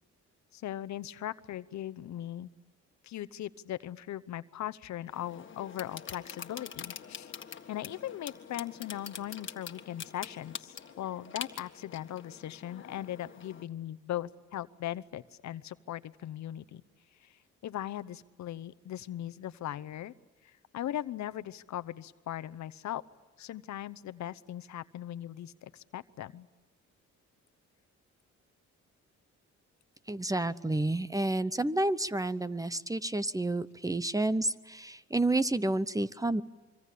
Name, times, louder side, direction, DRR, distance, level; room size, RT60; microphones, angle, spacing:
voice 1, 0.5-2.5 3.0-7.3 7.7-16.8 17.6-20.1 20.7-23.0 23.4-26.5, left 12 dB, 65° left, 14 dB, 0.9 m, -39 dB
sound 1, 5.1-13.7, left 7 dB, 40° left, 1.7 m, -45 dB
voice 2, 30.1-36.4, right 2 dB, 10° right, 15 dB, 0.8 m, -30 dB
25.5 x 24.5 x 8.5 m, 1.3 s
cardioid pair, 90°, 30 cm